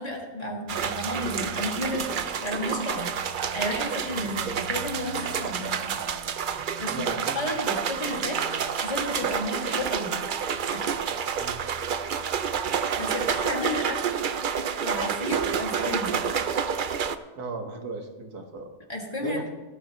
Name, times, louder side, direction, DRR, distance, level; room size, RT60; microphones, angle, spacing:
voice 1, 0.0-3.1 3.5-6.0 6.8-7.1 7.3-10.2 10.7-10.8 13.0-14.0 14.8-16.1 18.9-19.4, left 1 dB, 25° left, -1 dB, 2.2 m, -32 dB
sound 1, 0.7-17.2, right 7 dB, 65° right, 0.5 m, -29 dB
voice 2, 6.9-7.6 11.4-11.6 17.4-18.7 19.2-19.5, right 3 dB, 80° right, 3 dB, 2.0 m, -36 dB
17.0 x 13.0 x 3.0 m, 1.2 s
omnidirectional pair, 1.6 m